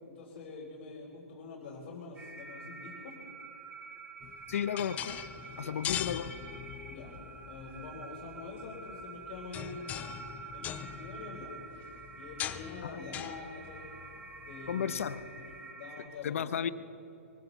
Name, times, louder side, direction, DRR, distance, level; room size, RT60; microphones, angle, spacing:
voice 1, 0.0-3.2 5.6-5.8 6.9-7.1 7.5-10.0 10.5-11.6 12.2-13.9 14.4-16.6, left 4 dB, 45° left, -6 dB, 4.0 m, -46 dB
sound 1, 2.2-16.1, right 4 dB, 10° right, 1.4 m, -48 dB
sound 2, 4.2-15.6, left 11 dB, 20° left, 0.4 m, -42 dB
voice 2, 4.5-5.2 5.6-6.3 12.8-13.3 14.7-15.3 16.2-16.7, left 8 dB, 65° left, 15 dB, 0.7 m, -34 dB
23.0 x 15.5 x 4.1 m, 3.0 s
hypercardioid pair, 135°, 8 cm